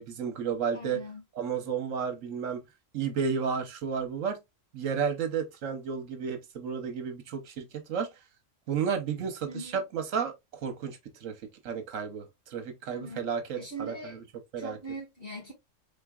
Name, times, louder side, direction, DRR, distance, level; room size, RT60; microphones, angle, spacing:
voice 1, 0.0-1.0 1.4-2.6 2.9-4.4 4.7-8.1 8.7-10.3 10.6-11.4 11.6-13.9 14.5-14.8, right 6 dB, 75° right, 1.2 m, -32 dB
voice 2, 0.7-1.2 9.5-9.8 12.9-13.3 13.5-14.2 14.6-15.5, right 2 dB, 45° left, 2.0 m, -41 dB
4.4 x 3.9 x 2.3 m
omnidirectional pair, 1.3 m